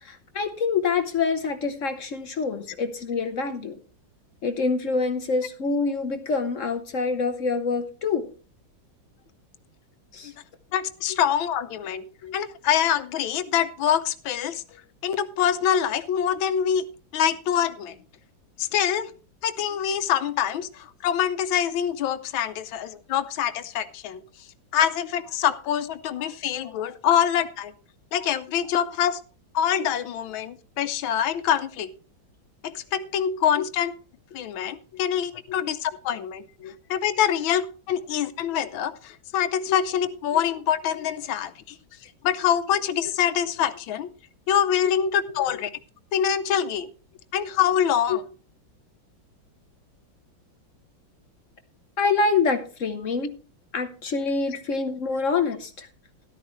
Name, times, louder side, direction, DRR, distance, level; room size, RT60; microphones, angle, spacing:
voice 1, 0.0-3.8 4.4-8.3 10.1-10.3 12.2-12.4 33.6-33.7 34.9-35.0 36.6-36.8 39.7-39.8 45.5-45.6 48.1-48.2 52.0-53.3 53.7-55.9, left 4 dB, 55° left, 8 dB, 1.0 m, -26 dB
voice 2, 10.7-12.0 12.3-16.8 17.1-17.9 18.6-19.1 19.4-24.2 24.7-27.7 28.1-29.2 29.5-31.9 32.6-33.9 34.3-36.4 36.9-41.7 42.2-44.1 44.5-45.7 46.1-46.9 47.3-48.2, left 9 dB, 85° left, 12 dB, 1.6 m, -25 dB
13.0 x 11.5 x 3.1 m, 0.36 s
omnidirectional pair, 2.1 m